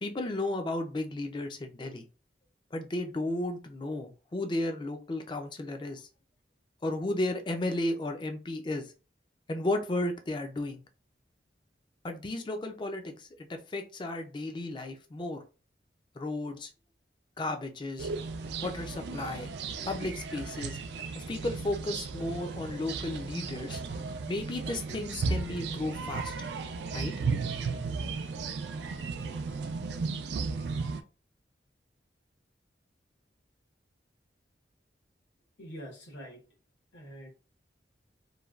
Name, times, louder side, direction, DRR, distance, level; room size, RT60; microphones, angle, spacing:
voice 1, 0.0-2.1 2.7-6.1 6.8-8.9 9.5-10.8 12.0-15.4 16.2-16.7 17.4-18.1 18.6-19.5 19.9-20.8 21.1-23.8 24.3-26.5 26.9-27.4, left 2 dB, 25° left, 6 dB, 0.3 m, -34 dB
sound 1, 18.0-31.0, right 4 dB, 65° right, 0.3 m, -35 dB
voice 2, 35.6-36.4 36.9-37.3, equal, 80° left, -3 dB, 1.1 m, -45 dB
3.1 x 2.2 x 2.4 m, 0.34 s
head